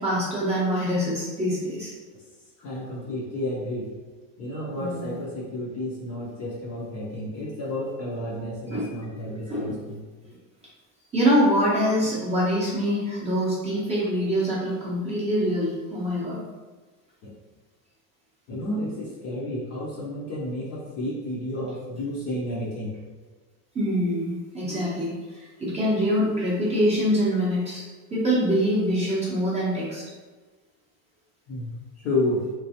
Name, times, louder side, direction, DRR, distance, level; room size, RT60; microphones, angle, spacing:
voice 1, 0.0-1.9 4.8-5.1 8.7-8.8 9.5-9.8 11.1-16.4 23.7-27.8 28.1-30.0, equal, 15° right, -7 dB, 0.5 m, -24 dB
voice 2, 2.6-3.9 4.4-10.0 17.2-17.3 18.5-22.9 31.5-32.5, left 1 dB, 35° left, -5 dB, 0.4 m, -31 dB
3.6 x 3.1 x 2.8 m, 1.3 s
cardioid pair, 170°, 48 cm